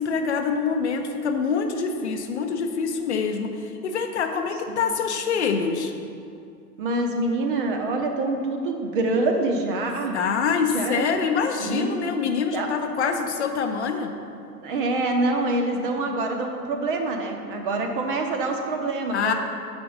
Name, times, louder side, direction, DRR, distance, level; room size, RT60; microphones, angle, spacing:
voice 1, 0.0-5.9 10.1-14.1 19.1-19.3, left 5 dB, 45° left, 5 dB, 0.7 m, -25 dB
voice 2, 6.8-10.2 10.7-11.1 11.6-12.0 12.5-12.7 14.6-19.3, right 2 dB, 35° right, 3 dB, 0.8 m, -26 dB
7.5 x 5.2 x 5.4 m, 2.4 s
figure-of-eight pair, 110°, 47 cm